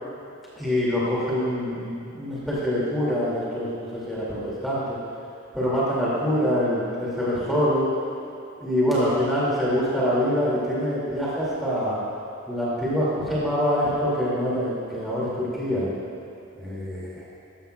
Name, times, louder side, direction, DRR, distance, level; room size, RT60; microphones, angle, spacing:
voice 1, 0.6-4.8 5.5-7.9 8.6-12.0 12.5-15.9 16.5-17.3, equal, ahead, -10 dB, 2.3 m, -25 dB
14.5 x 11.0 x 2.3 m, 2.7 s
head